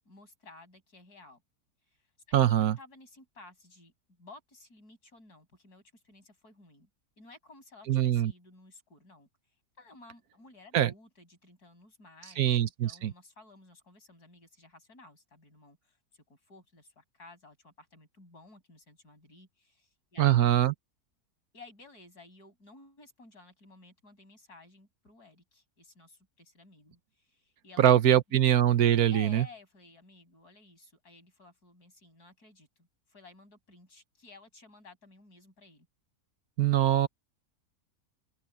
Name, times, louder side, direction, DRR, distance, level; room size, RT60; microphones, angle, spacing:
voice 1, 0.0-1.4 1.9-2.1 2.5-6.9 7.2-9.3 9.8-20.7 21.5-28.4 29.1-35.9, left 3 dB, 90° left, 7.7 m, -55 dB
voice 2, 2.3-2.8 7.9-8.3 10.7-10.9 12.4-13.1 20.2-20.7 27.8-29.4 36.6-37.1, right 11 dB, 75° right, 1.4 m, -23 dB
open air
omnidirectional pair, 1.6 m